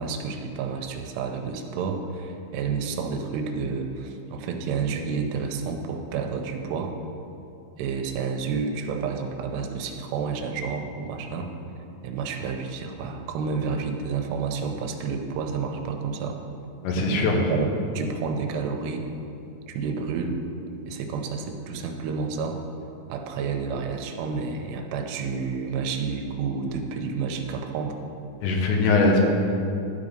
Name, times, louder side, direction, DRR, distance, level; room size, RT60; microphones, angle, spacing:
voice 1, 0.0-6.9 7.8-11.5 12.0-16.4 17.0-19.0 19.7-20.4 20.8-22.6 23.1-28.0, right 5 dB, 80° right, 4 dB, 2.7 m, -30 dB
voice 2, 16.8-17.4 28.4-29.2, left 3 dB, 85° left, 1 dB, 3.2 m, -21 dB
12.0 x 4.1 x 5.1 m, 2.7 s
omnidirectional pair, 5.0 m